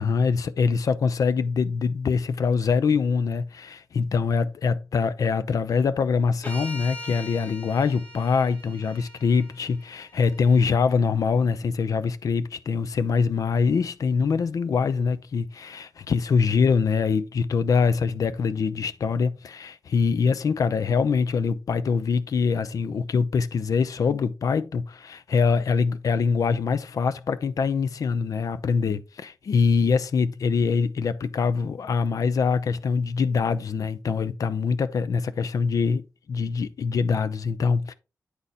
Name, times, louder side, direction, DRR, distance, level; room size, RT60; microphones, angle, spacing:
voice 1, 0.0-37.9, left 5 dB, 65° left, 0.6 m, -24 dB
sound 1, 6.4-10.6, left 1 dB, 25° left, 2.1 m, -41 dB
9.6 x 4.2 x 3.7 m
wide cardioid pair, 155°, 6 cm